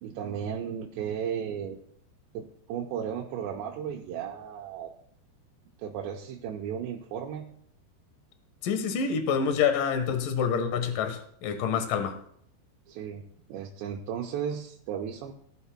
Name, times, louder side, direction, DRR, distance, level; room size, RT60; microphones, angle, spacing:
voice 1, 0.0-1.8 2.3-4.9 5.8-7.5 12.9-13.2 13.5-15.3, right 8 dB, 80° right, 2.9 m, -35 dB
voice 2, 8.6-12.2, left 6 dB, 65° left, 2.4 m, -27 dB
18.0 x 11.5 x 2.2 m
omnidirectional pair, 5.1 m